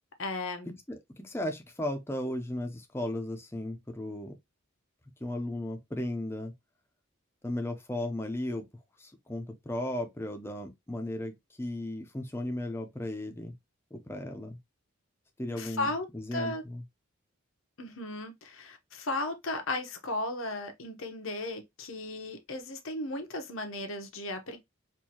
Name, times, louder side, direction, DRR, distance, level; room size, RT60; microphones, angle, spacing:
voice 1, 0.2-0.7 15.5-16.1 16.3-16.6 17.8-24.6, left 2 dB, 75° left, 0.9 m, -35 dB
voice 2, 0.9-4.3 5.2-6.5 7.4-8.7 9.0-11.3 11.6-13.5 13.9-14.6 15.4-16.8, left 1 dB, 10° left, 0.6 m, -35 dB
4.5 x 2.6 x 2.9 m
head